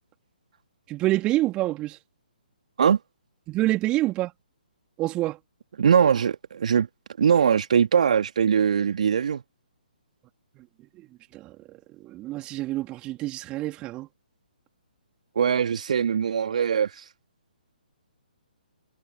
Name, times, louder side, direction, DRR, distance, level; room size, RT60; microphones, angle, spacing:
voice 1, 0.9-2.0 3.5-4.3 5.0-5.4 10.6-10.7 11.3-14.1, right 17 dB, 20° right, 3.4 m, -27 dB
voice 2, 5.8-6.9 7.2-9.4 15.4-17.0, right 7 dB, 55° right, 2.3 m, -21 dB
figure-of-eight pair, 135°, 5 cm